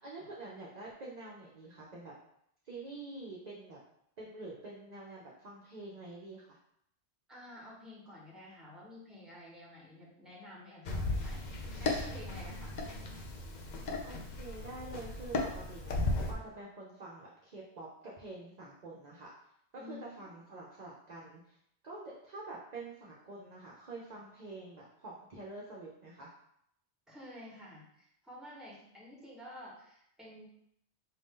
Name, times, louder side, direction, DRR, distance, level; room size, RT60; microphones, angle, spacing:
voice 1, 0.0-2.1 2.6-3.8 4.2-6.6 14.0-15.9 16.3-19.3 19.7-21.6 21.8-26.3, right 2 dB, 45° right, -4 dB, 0.6 m, -47 dB
voice 2, 3.2-3.5 7.3-11.4 11.8-12.8 19.8-20.2 27.1-30.5, left 1 dB, ahead, -5 dB, 1.1 m, -51 dB
sound 1, 10.9-16.3, left 2 dB, 50° left, 0.6 m, -36 dB
4.2 x 2.6 x 3.6 m, 0.74 s
omnidirectional pair, 1.1 m